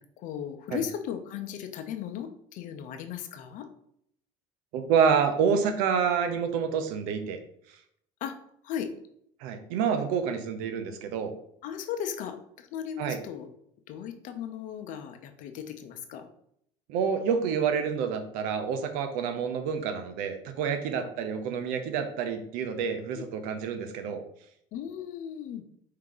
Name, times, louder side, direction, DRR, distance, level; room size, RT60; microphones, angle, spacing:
voice 1, 0.2-3.7 8.2-8.3 8.6-8.9 10.3-10.4 11.6-13.5 13.9-16.3 23.1-23.2 24.7-25.6, left 9 dB, 65° left, 8 dB, 0.7 m, -36 dB
voice 2, 4.7-7.4 9.4-11.3 13.0-13.2 16.9-24.2, right 6 dB, 80° right, 8 dB, 0.7 m, -28 dB
4.6 x 2.8 x 3.9 m, 0.71 s
supercardioid pair, 90°, 14 cm